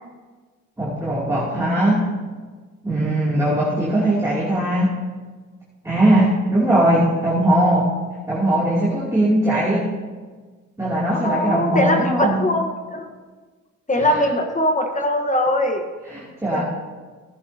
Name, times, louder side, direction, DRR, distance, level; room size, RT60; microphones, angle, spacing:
voice 1, 0.8-2.0 2.8-4.9 5.8-7.9 8.3-9.9 10.8-12.4 14.0-14.3 16.1-16.6, right 1 dB, 10° right, -8 dB, 2.7 m, -20 dB
voice 2, 11.2-13.1 13.9-15.8 16.5-16.6, left 1 dB, 25° left, 4 dB, 1.2 m, -21 dB
15.0 x 10.5 x 2.8 m, 1.4 s
cardioid pair, 90°, 30 cm